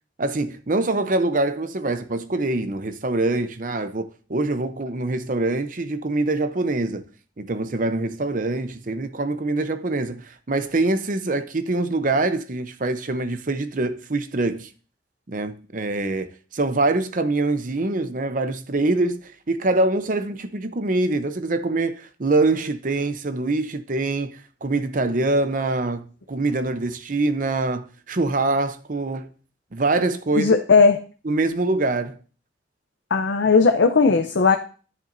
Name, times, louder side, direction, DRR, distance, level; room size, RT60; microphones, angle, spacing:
voice 1, 0.2-7.0 7.4-14.7 15.3-29.3 29.7-30.5 31.2-32.2, right 2 dB, 50° right, 0.7 m, -24 dB
voice 2, 30.4-31.0 33.1-34.6, left 4 dB, 85° left, 0.6 m, -17 dB
10.5 x 9.7 x 2.6 m
head